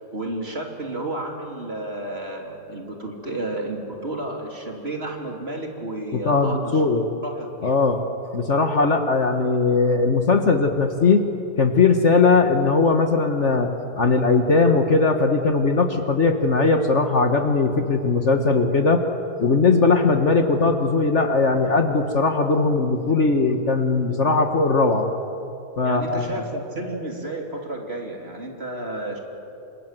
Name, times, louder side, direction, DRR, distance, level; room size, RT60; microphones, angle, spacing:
voice 1, 0.0-7.7 25.8-29.2, right 1 dB, 35° right, 1 dB, 3.6 m, -32 dB
voice 2, 6.1-7.0 7.6-8.0 8.3-11.2 11.6-13.7 14.0-19.0 19.4-25.1 25.8-26.4, left 3 dB, 45° left, 6 dB, 1.7 m, -19 dB
29.5 x 26.0 x 7.7 m, 2.8 s
omnidirectional pair, 1.7 m